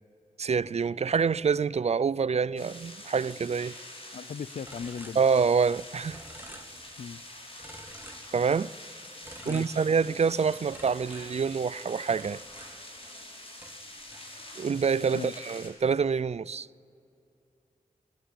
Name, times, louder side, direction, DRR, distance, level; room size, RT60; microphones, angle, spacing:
voice 1, 0.4-3.7 5.2-6.2 8.3-8.7 9.5-12.4 14.6-16.7, right 6 dB, 45° right, 0.4 m, -26 dB
sound 1, 2.6-15.7, left 1 dB, 40° left, 5.4 m, -46 dB
voice 2, 4.1-5.2 7.0-7.2 9.5-9.9 15.1-15.3, left 6 dB, 65° left, 0.5 m, -38 dB
sound 2, 4.7-5.8 6.1-7.2 7.6-8.8 9.2-10.4 10.7-13.3 13.6-14.8, right 1 dB, 15° right, 2.1 m, -50 dB
23.0 x 11.5 x 10.0 m
wide cardioid pair, 70°, 15 cm